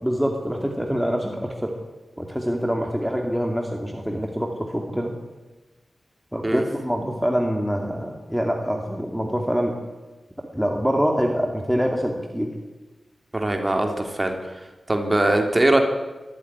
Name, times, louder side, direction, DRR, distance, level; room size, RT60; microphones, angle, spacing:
voice 1, 0.0-1.7 2.2-5.1 6.3-9.8 10.5-12.6, equal, 5° right, 2 dB, 2.4 m, -25 dB
voice 2, 13.3-14.5 14.9-15.8, right 1 dB, 20° right, 4 dB, 3.2 m, -21 dB
24.0 x 14.0 x 9.9 m, 1.2 s
wide cardioid pair, 120°, 0 cm